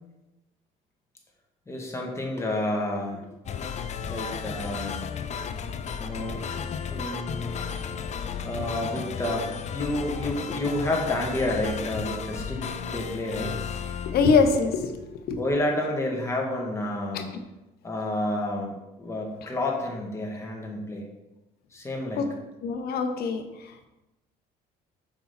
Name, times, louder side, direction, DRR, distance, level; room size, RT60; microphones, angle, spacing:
voice 1, 1.7-3.3 4.1-5.1 6.0-6.4 6.9-7.7 8.4-12.6 12.9-13.6 15.4-17.3 17.8-21.0 21.7-22.3, left 1 dB, 15° left, -1 dB, 1.6 m, -30 dB
sound 1, 3.4-15.1, left 7 dB, 40° left, 0.5 m, -34 dB
voice 2, 14.1-14.9 15.3-15.4 17.1-17.2 22.2-22.3 22.6-23.4, left 5 dB, 65° left, 7 dB, 1.0 m, -23 dB
7.0 x 5.5 x 4.3 m, 1.0 s
cardioid pair, 110°, 17 cm